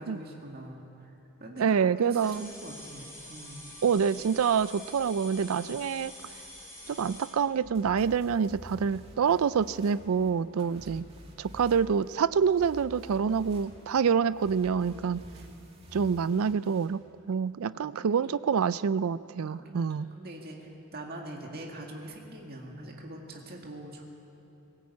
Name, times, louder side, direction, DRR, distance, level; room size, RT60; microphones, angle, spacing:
voice 1, 0.0-3.7 10.7-11.1 15.1-15.6 17.8-18.2 19.5-24.0, right 1 dB, 45° right, 0 dB, 2.1 m, -44 dB
voice 2, 1.6-2.5 3.8-6.1 6.9-11.1 11.4-15.2 15.9-20.1, right 6 dB, 70° right, 17 dB, 0.4 m, -27 dB
sound 1, 2.2-7.3, left 1 dB, 10° left, 5.3 m, -46 dB
sound 2, 7.6-16.9, equal, 25° right, 2.6 m, -50 dB
20.0 x 17.0 x 8.5 m, 3.0 s
head